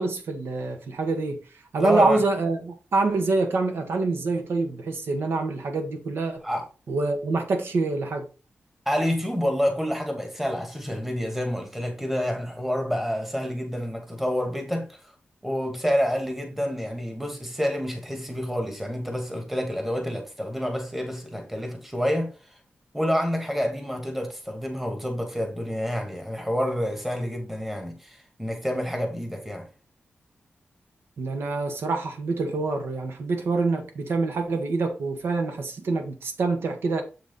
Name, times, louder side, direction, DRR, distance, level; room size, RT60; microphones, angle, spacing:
voice 1, 0.0-1.4 1.7-6.4 6.9-8.3 31.2-37.0, right 3 dB, 85° right, 1.3 m, -26 dB
voice 2, 1.8-2.2 6.4-6.7 8.9-15.0 15.4-22.3 22.9-29.7, equal, 5° right, 1.2 m, -28 dB
6.9 x 4.1 x 3.9 m
wide cardioid pair, 175°, 4 cm